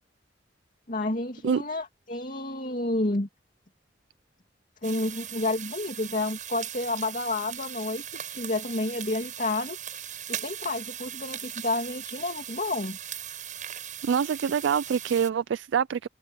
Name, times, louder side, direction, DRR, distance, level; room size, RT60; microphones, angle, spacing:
voice 1, 0.9-3.3 4.8-9.8 10.3-13.0, left 2 dB, 50° left, 2.4 m, -30 dB
sound 1, 4.8-15.3, right 10 dB, 45° right, 7.1 m, -39 dB
voice 2, 14.0-16.1, right 7 dB, 85° right, 0.4 m, -25 dB
head